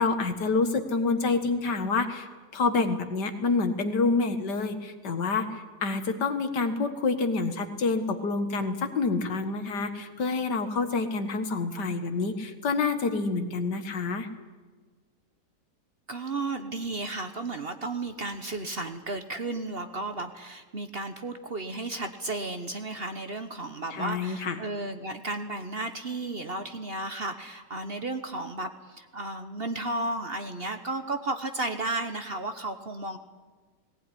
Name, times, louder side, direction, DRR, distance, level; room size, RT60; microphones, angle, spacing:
voice 1, 0.0-14.3 23.9-24.6, left 4 dB, 70° left, 8 dB, 2.2 m, -27 dB
voice 2, 16.1-33.2, right 2 dB, 40° right, 8 dB, 1.2 m, -33 dB
19.0 x 18.0 x 9.9 m, 1.4 s
omnidirectional pair, 1.9 m